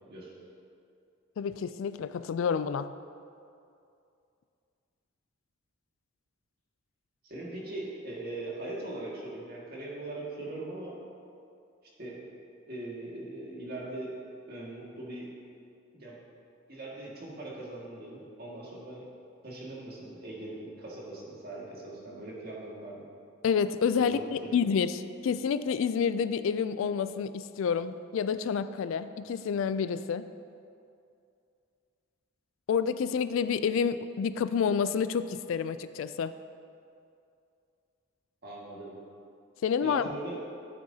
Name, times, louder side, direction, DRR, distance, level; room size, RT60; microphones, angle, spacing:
voice 1, 1.4-2.9 23.4-30.3 32.7-36.3 39.6-40.0, left 6 dB, 70° left, 13 dB, 0.3 m, -29 dB
voice 2, 7.2-11.0 12.0-12.2 12.7-14.1 14.5-15.3 15.9-16.2 16.7-19.1 19.4-23.1 23.9-24.6 38.4-39.0 39.8-40.4, right 2 dB, 50° right, -5 dB, 1.9 m, -40 dB
13.0 x 7.7 x 2.8 m, 2.5 s
head